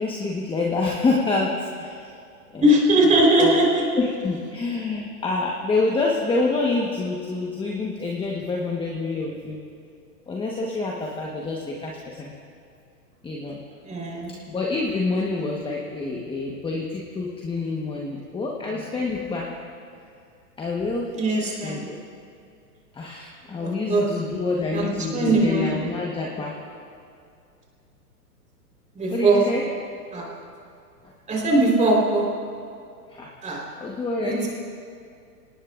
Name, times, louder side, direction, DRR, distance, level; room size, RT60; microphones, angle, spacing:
voice 1, 0.0-2.1 2.5-2.7 3.4-3.6 4.0-9.6 10.3-12.3 13.2-13.6 14.5-19.5 20.6-21.1 21.4-22.0 22.9-26.6 29.1-29.7 31.0-31.1 33.1-33.3 33.8-34.5, left 3 dB, 10° left, -2 dB, 1.3 m, -27 dB
voice 2, 2.6-3.8 13.8-14.3 21.2-21.8 23.6-24.1 24.7-25.8 28.9-29.4 30.1-30.3 31.3-32.3 33.4-33.6 34.2-34.5, right 1 dB, 15° right, -2 dB, 4.1 m, -20 dB
26.0 x 18.5 x 2.5 m, 2.4 s
hypercardioid pair, 130°, 48 cm